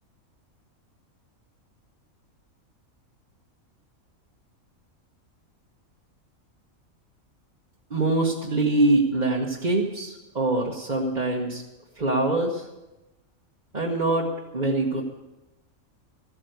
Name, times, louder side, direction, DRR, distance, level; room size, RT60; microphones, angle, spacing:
voice 1, 7.9-11.6 12.0-12.7 13.7-14.3 14.5-15.0, right 2 dB, 35° right, -3 dB, 1.3 m, -24 dB
14.5 x 8.6 x 8.1 m, 1.0 s
omnidirectional pair, 1.5 m